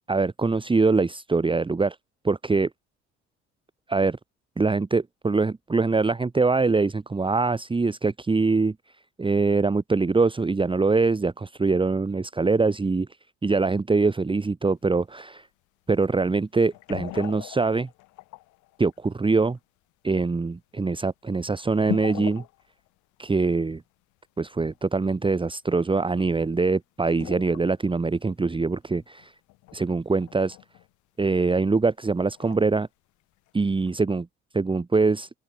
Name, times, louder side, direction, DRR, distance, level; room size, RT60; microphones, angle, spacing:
voice 1, 0.1-2.0 2.2-2.7 3.9-4.2 4.6-8.7 9.2-13.1 13.4-15.5 15.9-17.9 18.8-19.6 20.0-22.4 23.2-23.8 24.4-29.3 29.7-30.6 31.2-32.9 33.5-34.3 34.5-35.3, right 4 dB, 15° right, 1.6 m, -23 dB
sound 1, 14.8-14.9 16.6-18.9 19.6-19.7 20.1-20.2 21.0-21.1 21.7-22.9 23.2-23.3 24.7-24.8 26.4-26.6 27.0-27.8 28.1-28.2 28.5-28.6 28.9-30.9 31.3-31.6 32.4-32.8 33.5-33.6 33.8-33.9, left 22 dB, 60° left, 4.4 m, -39 dB
open air
figure-of-eight pair, 55°, 34 cm